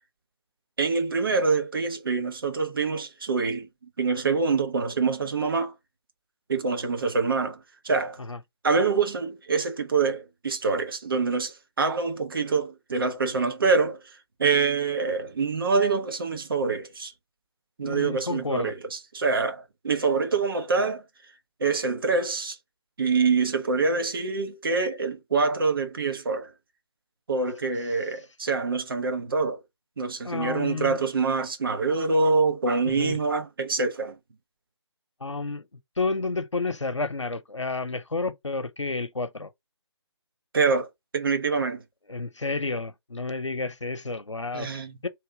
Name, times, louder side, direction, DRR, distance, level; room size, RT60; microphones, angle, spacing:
voice 1, 0.8-3.7 4.0-5.7 6.5-7.6 7.8-8.2 8.6-14.0 14.4-17.1 17.8-21.0 21.6-22.6 23.0-26.5 27.3-29.6 30.0-34.2 40.5-41.8 44.5-45.0, right 4 dB, 50° right, 1.0 m, -25 dB
voice 2, 17.8-18.7 30.2-31.0 32.8-33.2 35.2-35.7 36.0-39.5 42.1-44.7 45.0-45.1, left 3 dB, 80° left, 0.9 m, -30 dB
3.2 x 2.9 x 4.6 m
figure-of-eight pair, 150°, 15 cm